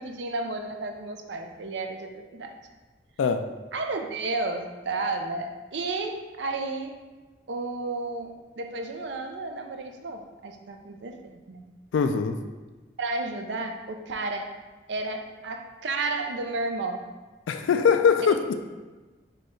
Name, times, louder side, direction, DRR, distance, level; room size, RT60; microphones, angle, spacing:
voice 1, 0.0-2.6 3.7-6.9 7.5-11.6 13.0-14.5 14.9-17.0 18.2-18.5, right 3 dB, 75° right, 5 dB, 0.5 m, -32 dB
voice 2, 11.9-12.4 17.5-18.5, left 6 dB, 90° left, 8 dB, 0.3 m, -22 dB
5.2 x 2.3 x 4.3 m, 1.2 s
head